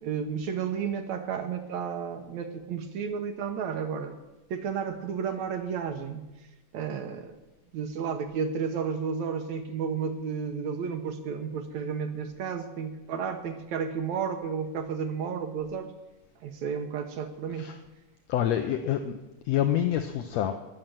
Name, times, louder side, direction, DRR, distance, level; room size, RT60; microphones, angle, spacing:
voice 1, 0.0-4.2 4.5-6.3 6.7-7.4 7.7-15.9 16.4-17.7, right 6 dB, 70° right, 6 dB, 2.1 m, -32 dB
voice 2, 18.3-19.2 19.5-20.5, left 11 dB, 75° left, 6 dB, 1.6 m, -27 dB
19.5 x 6.6 x 7.4 m, 1.1 s
omnidirectional pair, 3.8 m